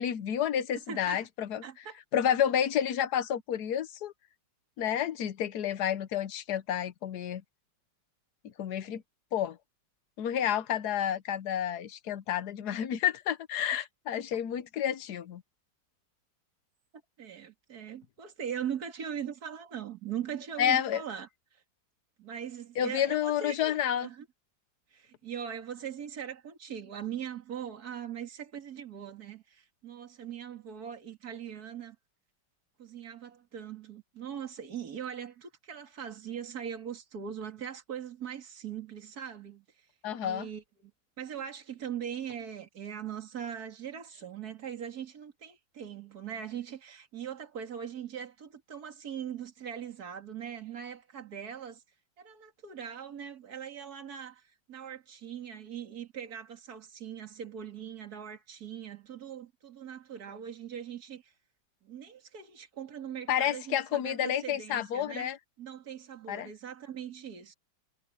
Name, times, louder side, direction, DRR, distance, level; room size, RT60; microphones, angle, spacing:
voice 1, 0.0-1.6 2.1-4.1 4.8-7.4 8.4-9.0 9.3-9.6 10.2-15.4 20.6-21.0 22.8-24.1 40.0-40.5 63.3-65.4 66.3-66.5, left 9 dB, 65° left, 1.3 m, -30 dB
voice 2, 0.7-1.2 1.6-2.0 17.2-21.6 22.2-24.3 24.9-32.0 32.8-39.9 40.2-40.9 41.2-51.8 52.2-61.3 61.8-65.3 65.6-67.5, right 8 dB, 55° right, 2.7 m, -41 dB
omnidirectional pair, 2.0 m